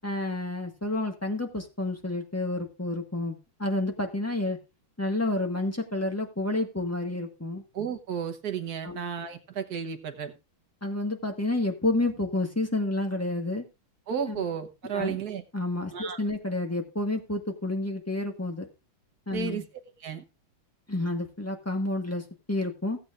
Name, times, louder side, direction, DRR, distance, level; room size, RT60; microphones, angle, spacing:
voice 1, 0.0-4.6 5.0-7.6 8.8-9.1 10.8-13.6 14.3-14.4 14.8-15.2 15.5-18.7 19.3-19.6 20.9-23.0, left 2 dB, 10° left, 3 dB, 1.2 m, -30 dB
voice 2, 7.7-10.3 14.1-15.4 15.9-16.2 19.3-19.6 20.0-20.2, right 7 dB, 50° right, 7 dB, 1.5 m, -33 dB
16.5 x 8.4 x 2.5 m, 0.27 s
omnidirectional pair, 2.4 m